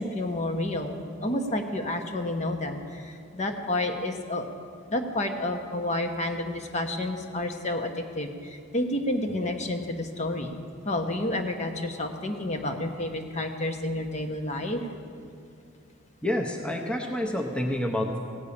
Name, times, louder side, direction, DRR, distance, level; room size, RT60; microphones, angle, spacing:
voice 1, 0.0-4.5 4.9-10.5 10.8-14.9, left 1 dB, 35° left, 4 dB, 0.9 m, -30 dB
voice 2, 16.2-18.2, left 1 dB, 5° left, 1 dB, 0.8 m, -28 dB
16.0 x 5.4 x 8.6 m, 2.3 s
head